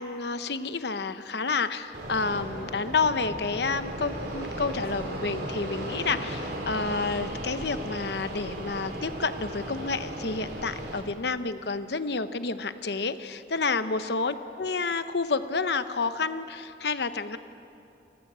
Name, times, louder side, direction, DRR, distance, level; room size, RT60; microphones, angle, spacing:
voice 1, 0.0-17.4, left 4 dB, 70° left, 11 dB, 0.9 m, -29 dB
Fixed-wing aircraft airplane, 1.9-11.0, right 1 dB, 65° right, 3.4 m, -36 dB
29.0 x 14.0 x 7.5 m, 2.7 s
head